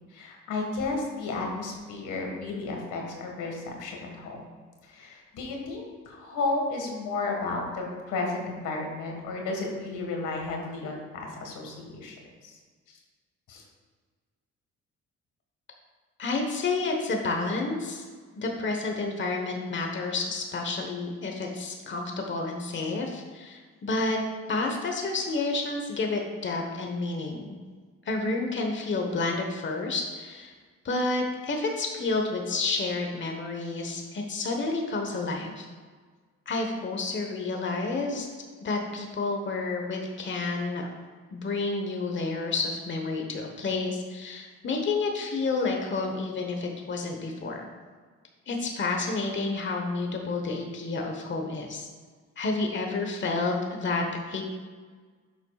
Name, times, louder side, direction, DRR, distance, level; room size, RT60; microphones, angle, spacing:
voice 1, 0.1-4.5 4.8-12.2 12.4-12.6 12.9-13.0 13.5-13.6, left 3 dB, 85° left, 1 dB, 1.8 m, -33 dB
voice 2, 16.2-18.0 18.4-24.2 24.5-27.6 28.0-30.5 30.8-35.6 36.5-38.3 38.6-40.9 41.3-47.7 48.5-51.9 52.4-54.4, left 3 dB, 40° left, 2 dB, 1.2 m, -30 dB
11.0 x 7.1 x 2.4 m, 1.5 s
cardioid pair, 90°, 30 cm